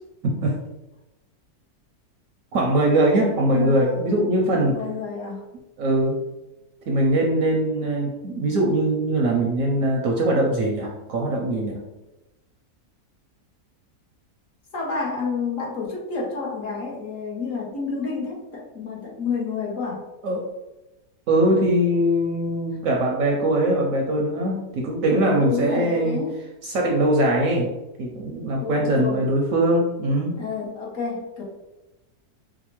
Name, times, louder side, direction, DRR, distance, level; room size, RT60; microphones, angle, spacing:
voice 1, 0.2-0.5 2.5-4.8 5.8-6.2 6.9-11.8 20.2-20.5 21.3-26.2 26.6-27.7 28.0-30.4, right 1 dB, 70° right, 0 dB, 0.8 m, -21 dB
voice 2, 3.5-4.2 4.6-5.4 14.7-20.0 25.1-26.4 28.6-29.3 30.4-31.4, left 5 dB, 60° left, -3 dB, 1.0 m, -29 dB
4.9 x 2.1 x 3.0 m, 1.0 s
omnidirectional pair, 1.8 m